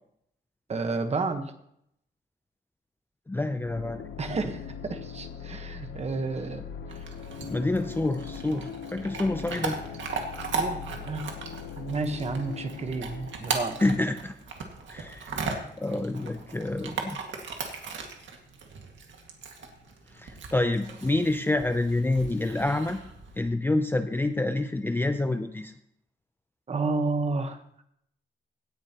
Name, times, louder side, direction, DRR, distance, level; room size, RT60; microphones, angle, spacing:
voice 1, 0.7-1.5 4.2-7.1 10.5-11.3 11.8-13.8 26.7-27.8, right 3 dB, 35° right, 7 dB, 1.2 m, -31 dB
voice 2, 3.3-4.0 7.5-9.8 13.8-14.3 14.9-15.4 15.8-17.2 20.1-23.0 23.4-25.7, left 2 dB, 10° left, 7 dB, 0.5 m, -27 dB
sound 1, 3.7-14.4, left 7 dB, 70° left, 1.0 m, -41 dB
Chewing mastication / Dog, 6.9-23.4, right 4 dB, 85° right, 2.0 m, -38 dB
17.5 x 10.0 x 3.0 m, 0.73 s
wide cardioid pair, 170°, 19 cm